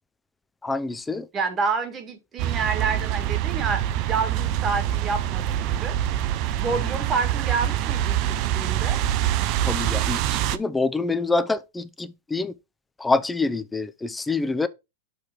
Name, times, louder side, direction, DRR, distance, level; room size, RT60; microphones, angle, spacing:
voice 1, 0.6-1.3 9.6-12.5 13.0-14.7, left 3 dB, 10° left, 0.6 m, -26 dB
voice 2, 1.3-6.0 6.6-9.0, right 5 dB, 30° right, 1.8 m, -28 dB
sound 1, 2.4-10.6, right 12 dB, 50° right, 0.6 m, -25 dB
6.8 x 3.1 x 5.4 m
hypercardioid pair, 105°, 0 cm